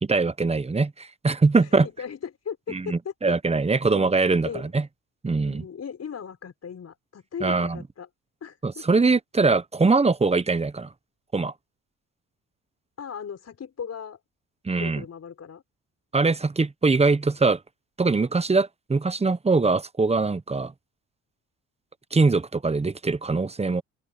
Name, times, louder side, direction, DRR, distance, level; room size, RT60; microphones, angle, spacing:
voice 1, 0.0-1.9 2.7-4.8 5.2-5.6 7.4-7.8 8.6-10.9 11.3-11.5 14.6-15.0 16.1-17.6 18.0-20.7 22.1-23.8, right 3 dB, 20° right, 1.0 m, -22 dB
voice 2, 1.6-3.3 3.9-4.1 4.4-4.7 5.4-8.1 8.4-9.0 13.0-14.2 14.8-15.6, left 7 dB, 45° left, 6.1 m, -37 dB
open air
cardioid pair, 85°, 34 cm